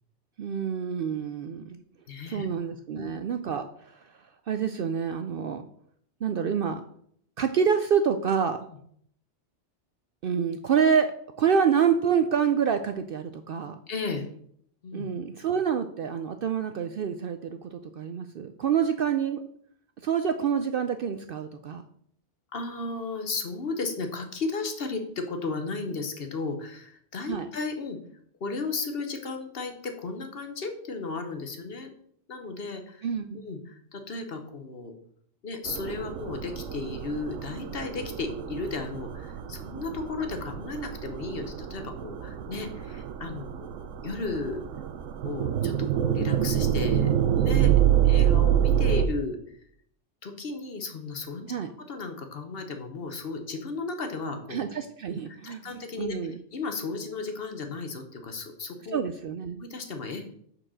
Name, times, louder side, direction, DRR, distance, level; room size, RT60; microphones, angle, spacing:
voice 1, 0.4-1.8 2.3-4.2 4.5-5.7 6.2-6.8 7.4-8.6 10.2-11.1 11.4-13.8 14.9-19.4 20.0-21.8 27.3-27.5 33.0-33.4 51.5-51.7 54.5-55.6 56.0-56.4 58.9-59.6, right 7 dB, 60° right, 8 dB, 0.6 m, -27 dB
voice 2, 2.1-2.5 2.9-3.1 13.9-14.3 14.8-15.0 22.5-28.0 28.4-31.9 32.3-33.0 33.3-34.9 35.4-43.7 44.0-44.6 45.2-47.7 48.0-49.4 50.2-51.5 51.9-54.6 55.4-59.0 59.6-60.2, left 3 dB, 55° left, 6 dB, 1.1 m, -34 dB
sound 1, 35.7-49.1, right 10 dB, 85° right, 1.0 m, -27 dB
6.2 x 4.7 x 6.3 m, 0.66 s
omnidirectional pair, 1.3 m